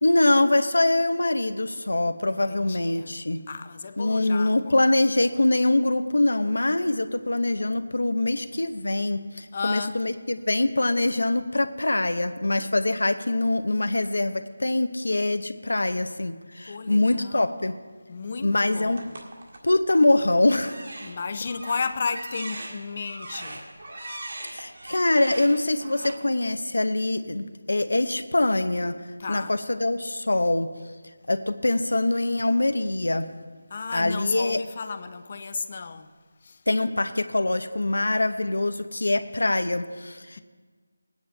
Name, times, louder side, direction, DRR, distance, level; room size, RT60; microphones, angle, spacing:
voice 1, 0.0-3.4 4.0-17.7 18.4-19.0 19.6-20.9 24.5-28.9 29.3-30.7 31.3-33.3 33.9-34.6 36.7-40.4, left 2 dB, 85° left, 0.8 m, -24 dB
voice 2, 2.3-3.1 3.5-4.8 9.5-10.0 16.7-17.6 18.1-19.2 21.0-23.6 29.2-29.6 33.7-36.1 36.4-36.6, left 5 dB, 35° left, 0.6 m, -33 dB
sound 1, 18.9-20.1 20.6-26.1, right 2 dB, 55° right, 1.8 m, -40 dB
19.5 x 9.3 x 3.3 m
figure-of-eight pair, 175°, 0 cm